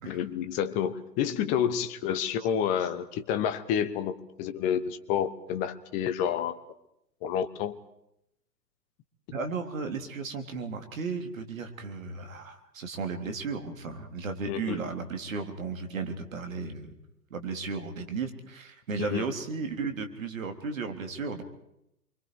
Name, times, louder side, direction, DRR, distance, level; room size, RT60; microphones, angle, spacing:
voice 1, 0.1-6.6 7.2-7.8 14.5-14.9 19.1-19.3, left 9 dB, 15° left, 10 dB, 1.0 m, -29 dB
voice 2, 9.3-16.9 17.3-21.4, right 4 dB, 55° right, 7 dB, 3.4 m, -35 dB
28.0 x 24.5 x 4.8 m, 0.80 s
figure-of-eight pair, 130°, 48 cm